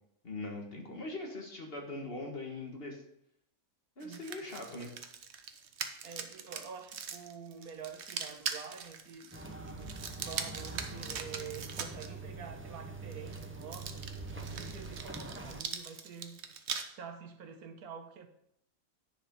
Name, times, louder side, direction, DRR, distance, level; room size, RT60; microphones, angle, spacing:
voice 1, 0.2-3.0 4.0-4.9, left 2 dB, 40° left, 1 dB, 1.8 m, -41 dB
sound 1, 4.0-12.1 13.1-16.8, right 6 dB, 55° right, 1.0 m, -41 dB
voice 2, 4.0-4.6 6.0-13.9 14.4-16.4 16.9-18.3, right 6 dB, 90° right, 7 dB, 1.5 m, -47 dB
sound 2, 9.3-15.6, right 3 dB, 15° right, 0.4 m, -44 dB
10.0 x 5.1 x 5.4 m, 0.76 s
omnidirectional pair, 1.5 m